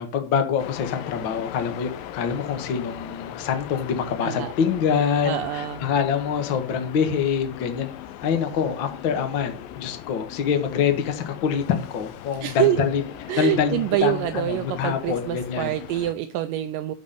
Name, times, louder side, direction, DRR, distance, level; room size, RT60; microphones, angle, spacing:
voice 1, 0.0-7.9 8.2-13.0 13.4-15.8, left 7 dB, 65° left, 6 dB, 1.2 m, -25 dB
sound 1, 0.6-16.1, left 11 dB, 80° left, 2.3 m, -39 dB
voice 2, 4.2-4.5 5.3-5.9 12.4-12.9 13.3-16.9, right 13 dB, 80° right, 9 dB, 2.1 m, -26 dB
11.5 x 4.3 x 6.6 m, 0.39 s
omnidirectional pair, 4.2 m